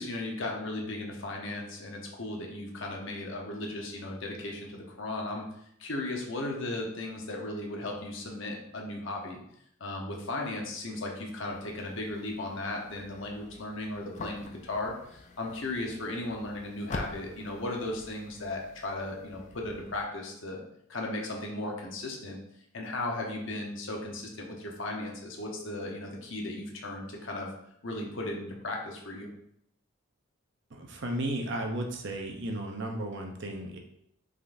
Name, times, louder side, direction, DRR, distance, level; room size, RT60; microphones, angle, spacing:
voice 1, 0.0-5.5 5.8-9.4 9.8-20.6 20.9-22.4 22.7-27.5 27.8-29.3, left 2 dB, 65° left, 0 dB, 1.0 m, -36 dB
sound 1, 11.5-20.0, left 2 dB, 35° left, 0.4 m, -46 dB
voice 2, 30.7-33.8, right 1 dB, 55° right, 3 dB, 0.7 m, -34 dB
5.4 x 3.8 x 2.6 m, 0.74 s
head